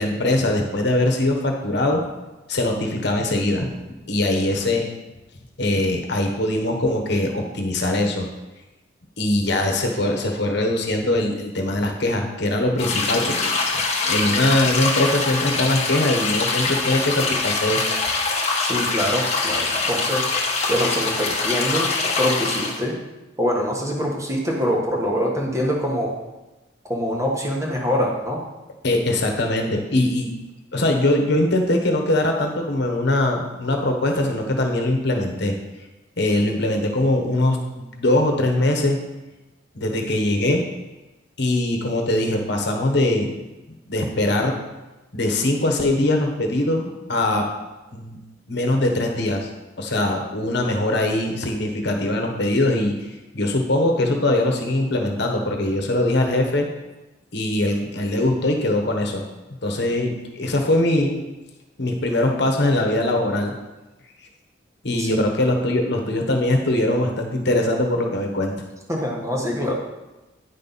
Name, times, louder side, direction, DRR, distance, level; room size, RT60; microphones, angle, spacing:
voice 1, 0.0-2.0 2.5-3.7 4.1-4.9 5.6-8.3 9.2-17.9 28.8-30.3 30.7-35.5 36.2-39.0 39.7-40.6 41.4-43.3 43.9-44.6 45.1-47.5 47.9-48.2 48.5-49.5 49.8-56.7 57.3-59.2 59.6-61.2 61.8-63.5 64.8-68.5, left 1 dB, 60° left, 3 dB, 1.2 m, -22 dB
sound 1, 12.8-22.8, left 3 dB, 35° left, 1.1 m, -23 dB
voice 2, 18.6-20.2 20.7-21.9 22.2-23.0 23.4-26.1 26.8-28.4 65.0-65.1 68.9-69.7, equal, 15° right, -2 dB, 1.5 m, -24 dB
9.6 x 5.5 x 4.1 m, 1.1 s
head